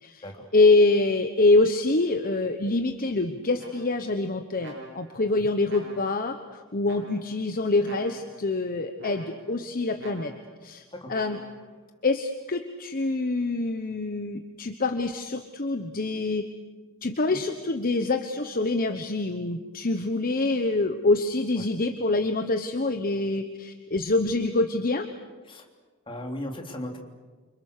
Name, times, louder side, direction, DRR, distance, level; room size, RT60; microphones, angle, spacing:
voice 1, 0.5-10.3 10.6-10.8 11.1-11.4 12.0-16.4 17.0-25.1, left 2 dB, 40° left, 7 dB, 1.1 m, -25 dB
sound 1, 3.6-4.1 4.6-5.2 5.7-6.3 6.8-7.4 7.8-8.5 9.0-9.6 10.0-10.6 11.1-11.7, right 1 dB, 60° right, 7.5 m, -45 dB
voice 2, 26.1-27.0, left 1 dB, 25° left, 2 dB, 3.4 m, -37 dB
29.0 x 26.0 x 6.8 m, 1.4 s
head